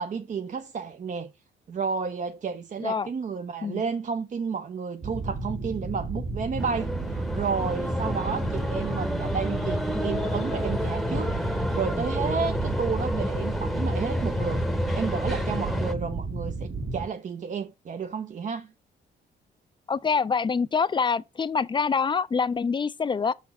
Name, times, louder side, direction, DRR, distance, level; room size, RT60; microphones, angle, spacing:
voice 1, 0.0-1.3 1.7-14.6 15.0-18.7, right 5 dB, 40° right, 0.6 m, -32 dB
sound 1, 5.0-17.1, right 2 dB, 60° right, 1.8 m, -33 dB
sound 2, 6.6-15.9, equal, ahead, 0.9 m, -29 dB
voice 2, 19.9-23.3, left 5 dB, 25° left, 0.4 m, -25 dB
5.9 x 4.2 x 4.1 m
cardioid pair, 90°, 20 cm